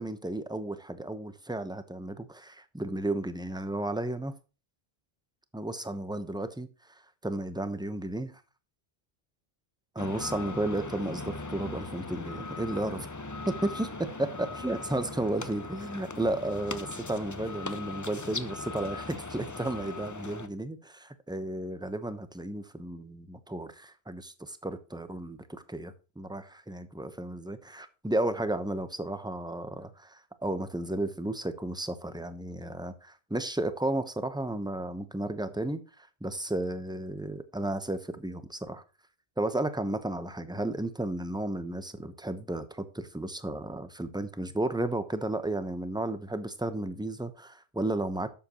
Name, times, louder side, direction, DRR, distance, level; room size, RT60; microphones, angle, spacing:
voice 1, 0.0-4.4 5.5-6.7 7.2-8.3 9.9-13.1 13.6-13.9 14.2-38.8 39.4-48.3, right 1 dB, 5° right, 0.8 m, -33 dB
sound 1, 10.0-20.5, left 3 dB, 25° left, 0.5 m, -39 dB
11.5 x 7.7 x 3.0 m
omnidirectional pair, 1.1 m